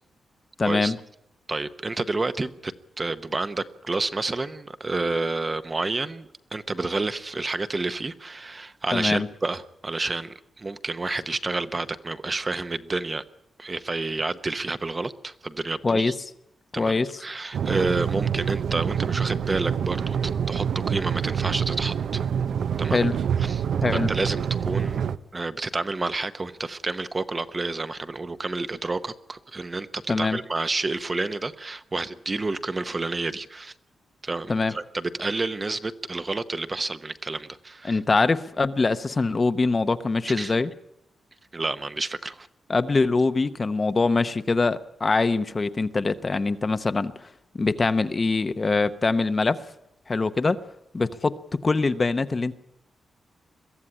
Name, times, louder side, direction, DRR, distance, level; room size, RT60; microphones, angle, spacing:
voice 1, 0.6-1.0 8.9-9.3 15.8-16.1 16.8-17.2 22.9-23.2 23.8-24.1 30.1-30.4 34.5-34.8 37.8-40.7 42.7-47.3 47.6-49.6 50.1-50.6 50.9-51.3 51.6-52.5, left 3 dB, 25° left, 11 dB, 0.8 m, -23 dB
voice 2, 1.5-13.2 13.6-16.1 16.7-22.2 22.8-23.1 23.4-23.6 23.9-25.0 25.3-33.7 34.2-38.0 40.4-40.5 41.5-42.5, right 3 dB, 20° right, 11 dB, 0.8 m, -29 dB
sound 1, 17.5-25.2, right 8 dB, 70° right, 0.7 m, -26 dB
22.5 x 15.5 x 9.8 m, 0.81 s
wide cardioid pair, 170°, 0 cm